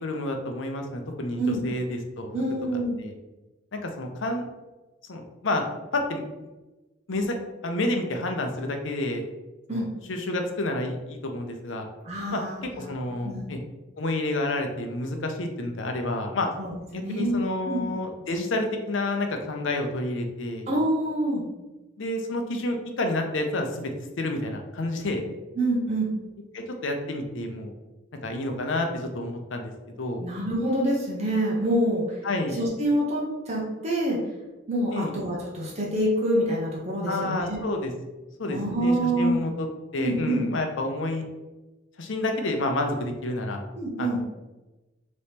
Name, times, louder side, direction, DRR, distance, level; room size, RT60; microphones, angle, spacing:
voice 1, 0.0-2.3 3.0-3.1 3.7-4.5 5.1-5.6 5.9-6.2 7.1-7.4 7.6-9.2 9.7-9.8 10.1-11.9 12.3-12.4 12.8-13.6 14.0-16.5 16.9-20.7 22.0-23.9 24.2-25.2 26.5-27.7 28.2-28.9 29.1-29.7 30.0-30.2 32.2-32.6 34.9-35.1 37.1-37.9 38.4-39.7 39.9-41.2 42.0-43.6 44.0-44.2, left 2 dB, 75° left, 4 dB, 0.7 m, -29 dB
voice 2, 2.3-3.0 9.7-9.9 12.0-13.0 13.2-13.5 16.6-17.4 17.6-17.8 20.7-21.4 25.5-26.1 30.2-32.2 32.5-34.2 34.7-37.6 38.5-39.4 40.0-40.4 43.8-44.2, right 1 dB, 35° right, -3 dB, 0.8 m, -26 dB
3.4 x 3.1 x 4.2 m, 1.1 s
head